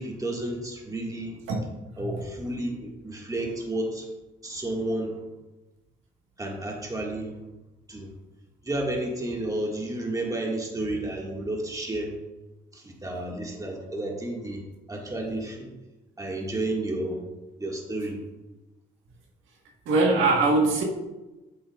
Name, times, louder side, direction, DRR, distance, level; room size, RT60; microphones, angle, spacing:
voice 1, 0.0-1.4 2.0-4.1 4.4-5.2 6.4-7.4 7.9-8.1 8.6-12.2 12.7-14.6 14.9-15.7 16.2-17.3 17.6-18.2, right 1 dB, 15° right, -1 dB, 1.9 m, -31 dB
voice 2, 19.8-20.8, right 3 dB, 90° right, 0 dB, 1.5 m, -22 dB
8.7 x 7.9 x 2.4 m, 1.1 s
cardioid pair, 90°, 20 cm